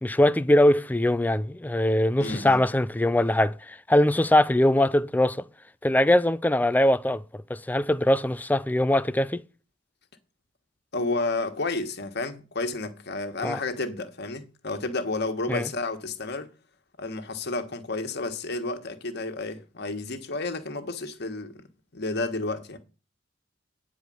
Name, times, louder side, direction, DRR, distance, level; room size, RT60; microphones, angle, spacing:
voice 1, 0.0-5.5 5.8-7.2 7.5-9.4 13.4-13.6 15.5-15.7, left 1 dB, 10° left, 0.4 m, -22 dB
voice 2, 2.2-2.6 10.9-16.5 17.0-21.6 21.9-22.8, left 2 dB, 60° left, 1.5 m, -31 dB
9.7 x 4.9 x 7.7 m
head